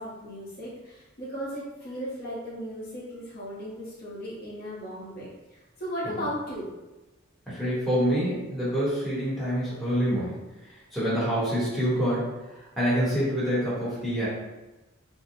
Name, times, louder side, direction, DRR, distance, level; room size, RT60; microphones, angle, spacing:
voice 1, 0.0-6.8, equal, 45° left, -8 dB, 0.7 m, -36 dB
voice 2, 7.5-10.3 10.9-12.3 12.6-14.3, equal, ahead, -11 dB, 0.8 m, -26 dB
2.6 x 2.0 x 2.7 m, 1.0 s
head